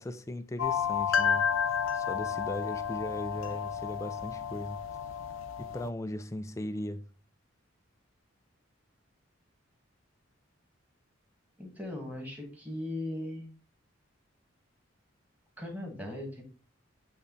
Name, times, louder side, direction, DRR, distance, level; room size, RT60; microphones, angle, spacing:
voice 1, 0.0-1.5 1.9-4.8 5.6-7.1, left 1 dB, 15° left, 0.4 m, -38 dB
sound 1, 0.6-5.9, left 7 dB, 80° left, 0.6 m, -31 dB
voice 2, 11.6-13.4 15.6-16.4, left 1 dB, 10° right, 1.8 m, -38 dB
8.2 x 3.4 x 4.0 m
head